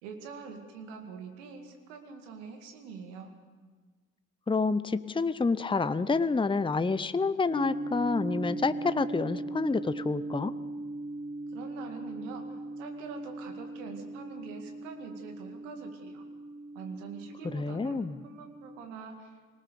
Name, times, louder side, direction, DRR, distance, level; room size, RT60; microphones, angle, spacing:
voice 1, 0.0-3.3 11.5-16.2 16.7-19.4, right 5 dB, 80° right, 5 dB, 2.2 m, -44 dB
voice 2, 4.5-10.5 17.5-18.2, left 4 dB, 15° left, 14 dB, 0.8 m, -28 dB
sound 1, 7.5-18.8, right 2 dB, 15° right, 6.4 m, -39 dB
22.5 x 19.0 x 7.0 m, 1.4 s
hypercardioid pair, 45°, 37 cm